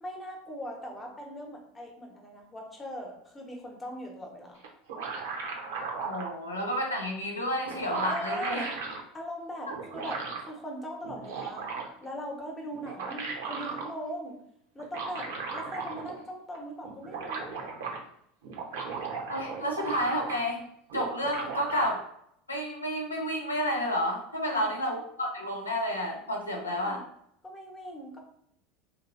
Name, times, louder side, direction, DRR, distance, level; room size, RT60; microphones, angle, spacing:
voice 1, 0.0-4.6 8.1-8.7 9.1-11.7 12.0-14.4 14.7-17.7 24.4-24.7 26.6-27.0 27.4-28.2, equal, 20° left, 0 dB, 0.9 m, -40 dB
sound 1, 4.6-6.3 7.3-7.4 7.6-9.0 9.7-10.5 11.0-12.1 12.7-13.9 14.8-16.2 16.5-16.6 16.8-18.0 18.4-20.6 20.9-21.9, right 4 dB, 65° right, 0.6 m, -36 dB
voice 2, 6.1-8.7 19.3-20.7 20.9-22.1 22.5-27.0, equal, 90° left, 0 dB, 0.5 m, -30 dB
3.1 x 2.6 x 2.5 m, 0.73 s
figure-of-eight pair, 75°, 0 cm